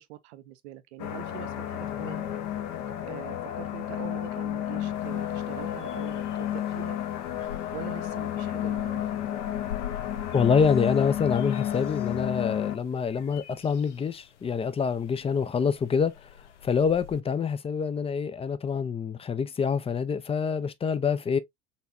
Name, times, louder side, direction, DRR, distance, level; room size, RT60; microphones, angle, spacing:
voice 1, 0.0-2.2 3.0-7.0 7.7-9.2, right 14 dB, 70° right, 0.7 m, -43 dB
sound 1, 1.0-12.8, left 11 dB, 55° left, 0.9 m, -31 dB
sound 2, 4.9-17.2, left 10 dB, 90° left, 0.5 m, -47 dB
voice 2, 10.3-16.1 16.6-21.4, left 6 dB, 15° left, 0.5 m, -26 dB
4.1 x 3.3 x 2.6 m
figure-of-eight pair, 65°, 35 cm